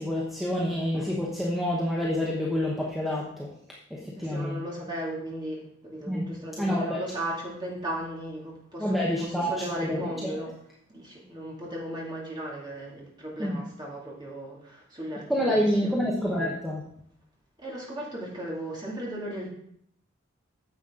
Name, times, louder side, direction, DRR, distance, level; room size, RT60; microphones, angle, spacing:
voice 1, 0.0-3.5 3.9-4.6 6.1-6.3 6.6-7.0 8.8-9.5 9.8-10.0 13.4-13.6 15.3-16.8, equal, ahead, -4 dB, 1.0 m, -27 dB
voice 2, 3.9-10.5 10.9-16.0 17.6-19.5, right 1 dB, 20° right, -4 dB, 2.4 m, -36 dB
9.5 x 7.2 x 3.7 m, 0.69 s
head